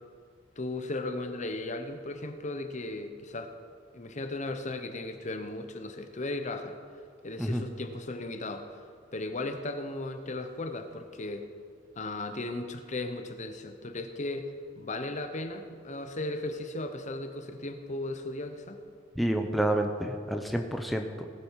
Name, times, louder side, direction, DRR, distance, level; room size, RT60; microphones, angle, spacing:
voice 1, 0.6-3.5 3.9-6.8 7.2-8.8 9.1-11.5 12.0-14.5 14.8-18.8, left 2 dB, 40° left, 7 dB, 0.9 m, -36 dB
voice 2, 19.2-21.3, right 1 dB, ahead, 3 dB, 0.7 m, -29 dB
18.0 x 9.0 x 4.8 m, 2.2 s
head